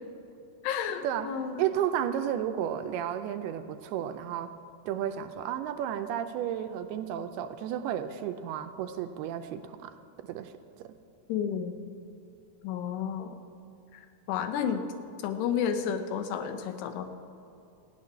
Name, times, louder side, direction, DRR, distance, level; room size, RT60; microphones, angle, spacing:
voice 1, 0.6-1.7 11.3-11.8 12.6-13.3 13.9-14.8 15.2-17.0, left 8 dB, 85° left, 8 dB, 3.0 m, -31 dB
voice 2, 1.6-4.5 4.9-9.9 10.2-10.5 10.8-10.9, right 10 dB, 80° right, 9 dB, 2.4 m, -32 dB
15.0 x 7.4 x 9.7 m, 2.7 s
omnidirectional pair, 4.7 m